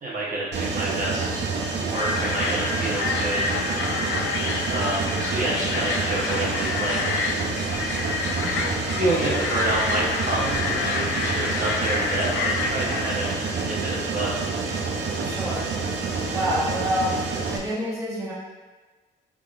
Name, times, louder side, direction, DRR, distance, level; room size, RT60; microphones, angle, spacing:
voice 1, 0.0-1.4 1.8-3.4 4.7-7.2 8.9-13.3 13.5-14.3, right 1 dB, 40° right, -6 dB, 1.1 m, -28 dB
Mechanisms, 0.5-17.6, right 4 dB, 60° right, 0.6 m, -28 dB
sound 1, 1.9-13.6, left 4 dB, 75° left, 0.4 m, -29 dB
voice 2, 8.4-8.8 15.2-15.7 16.3-17.2 17.5-18.3, equal, 15° right, -7 dB, 1.0 m, -28 dB
3.7 x 3.6 x 2.4 m, 1.3 s
cardioid pair, 90°, 20 cm